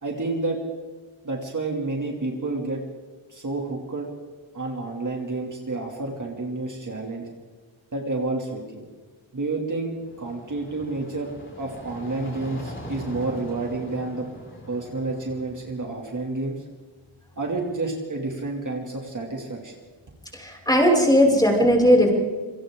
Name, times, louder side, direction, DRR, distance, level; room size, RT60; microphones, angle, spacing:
voice 1, 0.0-0.6 1.2-2.8 3.3-4.1 4.5-7.3 7.9-8.9 9.3-11.3 11.6-14.3 14.7-16.6 17.4-19.7, right 3 dB, 40° right, 0 dB, 2.8 m, -29 dB
sound 1, 9.8-15.8, left 1 dB, 25° left, 5.3 m, -41 dB
voice 2, 20.3-22.1, equal, 10° left, -2 dB, 6.3 m, -17 dB
28.0 x 26.0 x 3.9 m, 1.4 s
wide cardioid pair, 170°, 48 cm